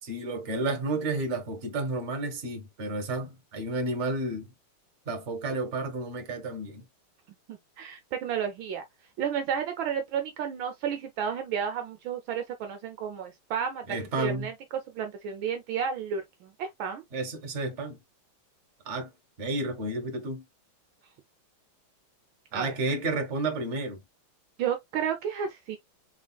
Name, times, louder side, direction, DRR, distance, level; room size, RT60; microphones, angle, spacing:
voice 1, 0.0-4.5 5.1-6.8 13.9-14.5 17.1-18.0 18.8-19.1 19.4-20.4 22.5-24.0, right 2 dB, 40° right, 1.2 m, -31 dB
voice 2, 7.5-8.8 9.2-13.8 14.2-14.5 14.9-17.0 22.5-22.8 24.6-25.8, right 8 dB, 70° right, 1.3 m, -32 dB
3.8 x 3.6 x 2.3 m
omnidirectional pair, 2.4 m